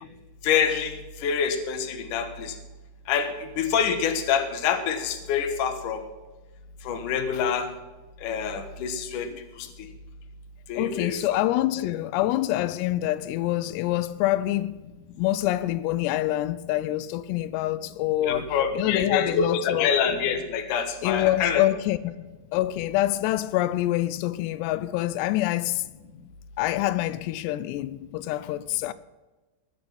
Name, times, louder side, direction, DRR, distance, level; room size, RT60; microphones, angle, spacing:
voice 1, 0.4-2.6 3.1-6.0 6.8-7.7 8.2-9.9 10.7-11.2 18.2-21.6, left 7 dB, 60° left, 2.4 m, -26 dB
voice 2, 10.8-14.8 15.2-18.5 18.7-19.9 21.0-22.2 22.5-25.8 26.6-28.9, left 15 dB, 90° left, 2.7 m, -26 dB
20.0 x 7.0 x 6.0 m
omnidirectional pair, 4.8 m